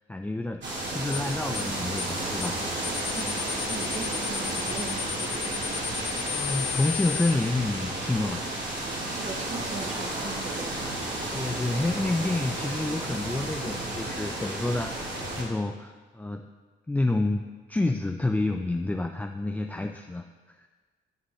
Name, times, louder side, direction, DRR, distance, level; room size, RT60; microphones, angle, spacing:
voice 1, 0.1-2.6 6.2-8.5 11.3-15.0 15.4-16.5 16.9-20.7, left 2 dB, 10° left, 4 dB, 0.3 m, -29 dB
sound 1, 0.6-15.4, right 1 dB, 65° right, 2.4 m, -32 dB
sound 2, 1.1-1.3 1.5-1.7 2.0-2.1 2.4-2.6 2.8-7.3, left 12 dB, 55° left, 1.6 m, -33 dB
voice 2, 3.1-5.8 9.1-10.9, right 4 dB, 35° right, 5 dB, 1.0 m, -40 dB
13.0 x 5.2 x 3.1 m, 1.4 s
cardioid pair, 90°, 20 cm